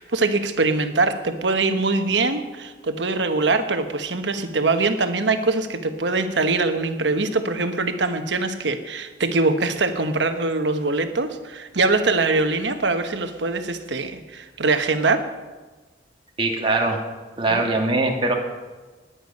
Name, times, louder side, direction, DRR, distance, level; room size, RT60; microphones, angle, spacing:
voice 1, 0.0-15.3 17.5-17.6, right 3 dB, 75° right, 8 dB, 1.2 m, -23 dB
voice 2, 16.4-17.0 17.4-18.3, right 2 dB, 30° right, 1 dB, 2.1 m, -21 dB
20.0 x 9.0 x 5.4 m, 1.3 s
head